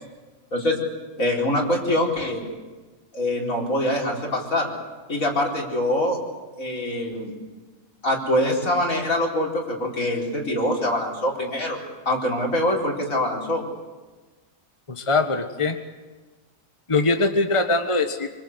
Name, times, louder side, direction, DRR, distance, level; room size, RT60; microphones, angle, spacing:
voice 1, 1.2-2.4 3.1-4.7 5.1-6.2 6.6-7.3 8.0-11.8 12.0-13.6, left 1 dB, 80° left, -1 dB, 5.1 m, -24 dB
voice 2, 14.9-15.8 16.9-18.3, left 3 dB, 25° left, 6 dB, 1.5 m, -22 dB
26.0 x 24.5 x 8.2 m, 1.3 s
omnidirectional pair, 1.4 m